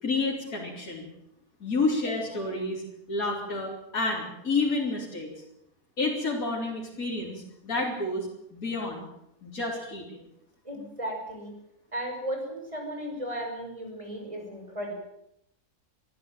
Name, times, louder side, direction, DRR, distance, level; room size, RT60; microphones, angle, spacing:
voice 1, 0.0-1.1 1.6-2.8 3.1-5.3 6.0-9.1 9.4-10.2, left 3 dB, 60° left, -3 dB, 4.3 m, -30 dB
voice 2, 10.6-11.5 11.9-14.9, right 1 dB, 20° right, 2 dB, 6.2 m, -35 dB
23.5 x 14.0 x 9.2 m, 0.81 s
omnidirectional pair, 1.7 m